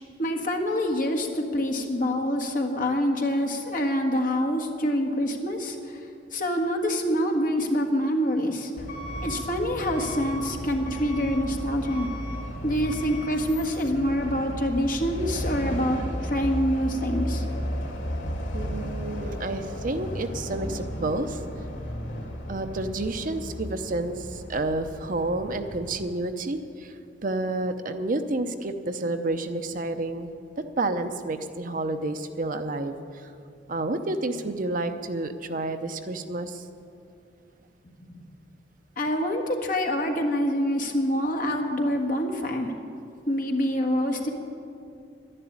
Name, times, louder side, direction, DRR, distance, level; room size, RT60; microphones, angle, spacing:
voice 1, 0.2-6.0 6.3-8.7 9.2-12.1 12.6-17.4 39.0-42.7 43.3-44.3, equal, 45° left, 3 dB, 1.5 m, -26 dB
Truck / Alarm, 8.8-26.0, equal, 90° left, 2.8 m, -34 dB
voice 2, 18.5-21.4 22.5-33.3 33.7-36.6, right 2 dB, 45° right, 8 dB, 0.7 m, -30 dB
11.5 x 11.0 x 8.6 m, 2.6 s
head